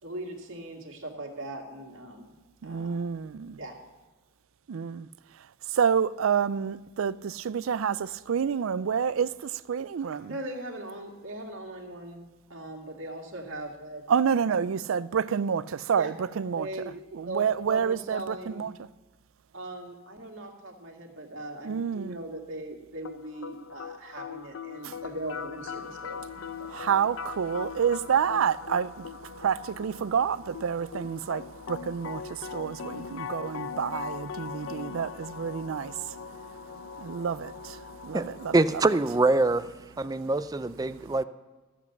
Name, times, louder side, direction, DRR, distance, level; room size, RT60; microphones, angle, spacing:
voice 1, 0.0-2.3 2.6-3.0 3.6-3.8 10.3-14.0 15.9-16.1 16.5-16.9 17.2-18.7 19.5-26.2 26.6-26.8, right 1 dB, 70° right, 2.3 m, -39 dB
voice 2, 2.6-3.6 4.7-5.1 5.7-10.4 14.1-16.7 17.1-18.9 21.6-22.2 24.8-24.9 26.6-38.5, right 7 dB, 85° right, 0.4 m, -29 dB
sound 1, 23.0-39.0, left 6 dB, 85° left, 0.6 m, -41 dB
voice 3, 38.1-39.7 40.0-41.2, right 2 dB, 20° right, 0.4 m, -24 dB
14.0 x 8.2 x 5.9 m
head